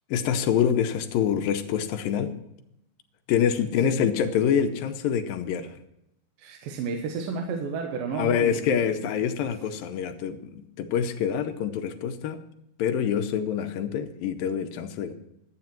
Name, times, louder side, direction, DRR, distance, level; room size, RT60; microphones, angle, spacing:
voice 1, 0.1-2.3 3.3-5.8 8.1-12.4 12.8-15.1, left 8 dB, 75° left, 7 dB, 2.3 m, -26 dB
voice 2, 6.4-8.8, right 5 dB, 70° right, 3 dB, 2.6 m, -32 dB
12.5 x 8.6 x 5.9 m, 0.81 s
omnidirectional pair, 4.6 m